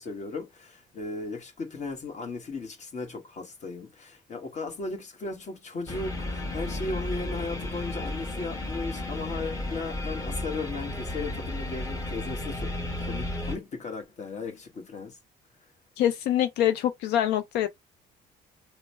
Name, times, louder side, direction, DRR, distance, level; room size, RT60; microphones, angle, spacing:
voice 1, 0.0-15.2, left 3 dB, 45° left, 1.3 m, -36 dB
sound 1, 5.9-13.6, left 1 dB, 20° left, 1.2 m, -33 dB
voice 2, 16.0-17.7, left 11 dB, 80° left, 0.4 m, -25 dB
3.0 x 2.0 x 4.1 m
cardioid pair, 110°, 17 cm